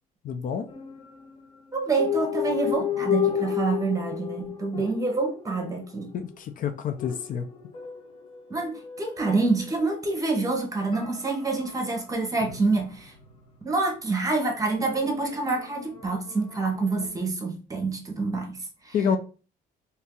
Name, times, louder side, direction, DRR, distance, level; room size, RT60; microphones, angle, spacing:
voice 1, 0.2-0.7 4.7-4.8 6.1-7.5 18.9-19.2, left 7 dB, 55° left, 0.5 m, -28 dB
sound 1, 0.7-1.4 2.0-6.5 7.0-10.3 10.9-13.5 14.9-17.1, left 10 dB, 30° left, 1.0 m, -33 dB
voice 2, 1.7-6.1 8.5-13.1 13.6-19.0, right 3 dB, 20° right, 1.0 m, -27 dB
2.9 x 2.7 x 3.6 m
cardioid pair, 110°, 17 cm